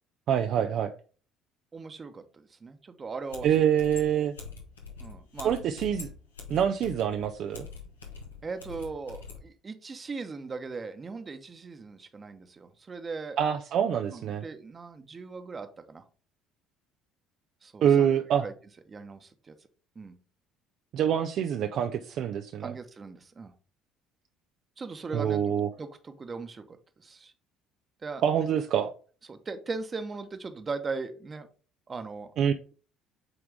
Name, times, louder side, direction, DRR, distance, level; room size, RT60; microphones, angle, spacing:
voice 1, 0.3-0.9 3.4-4.3 5.4-6.1 6.5-7.7 13.4-14.4 17.8-18.4 20.9-22.7 25.1-25.7 28.2-28.9 32.4-32.5, right 9 dB, 55° right, 6 dB, 0.4 m, -25 dB
voice 2, 1.7-3.5 5.0-5.6 8.4-13.4 14.1-16.0 17.6-18.1 18.4-18.5 18.9-19.5 19.9-20.2 22.6-23.5 24.8-25.5 25.8-27.3 28.0-28.5 29.3-31.5 31.9-32.3, right 4 dB, 30° right, 8 dB, 1.0 m, -39 dB
sound 1, 3.3-9.4, left 5 dB, 85° left, 1.1 m, -44 dB
8.0 x 3.6 x 3.5 m, 0.39 s
hypercardioid pair, 55°, 0 cm